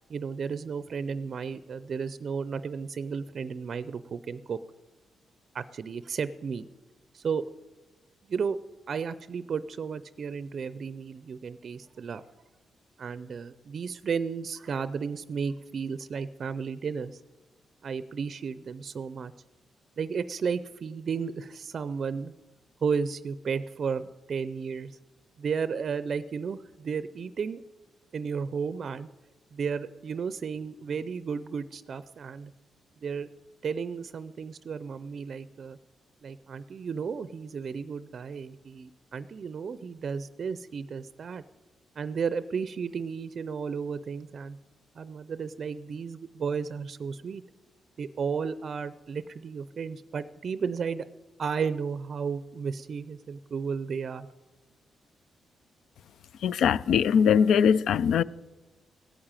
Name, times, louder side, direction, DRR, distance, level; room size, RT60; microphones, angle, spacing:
voice 1, 0.1-4.6 5.5-6.7 7.1-7.5 8.3-8.6 8.9-12.2 13.0-17.2 17.8-19.3 20.0-22.3 22.8-25.0 25.4-27.6 28.1-29.1 29.5-32.5 33.0-33.3 33.6-35.8 36.2-41.4 42.0-44.6 44.9-47.4 48.0-51.1 51.4-54.3, right 6 dB, 50° right, 0.4 m, -33 dB
voice 2, 56.4-58.2, left 7 dB, 80° left, 0.4 m, -21 dB
16.5 x 8.8 x 8.9 m
cardioid pair, 130°, 0 cm